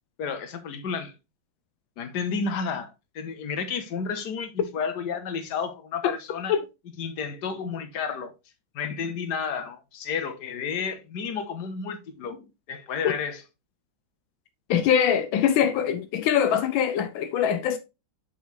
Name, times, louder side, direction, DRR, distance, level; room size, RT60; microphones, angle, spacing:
voice 1, 0.2-1.1 2.0-6.5 7.0-8.3 8.7-12.4 12.7-13.4, left 6 dB, 60° left, 1.6 m, -31 dB
voice 2, 14.7-17.8, left 8 dB, 85° left, 1.4 m, -23 dB
6.3 x 5.9 x 3.2 m
omnidirectional pair, 2.1 m